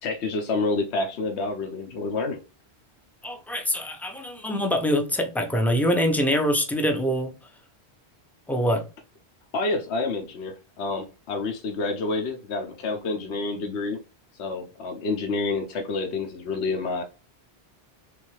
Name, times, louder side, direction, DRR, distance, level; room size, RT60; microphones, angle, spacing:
voice 1, 0.0-2.4 9.5-14.0 14.4-17.0, left 3 dB, 85° left, 1.0 m, -28 dB
voice 2, 3.2-7.3 8.5-8.8, equal, ahead, 0.4 m, -24 dB
3.5 x 3.2 x 3.1 m
omnidirectional pair, 1.1 m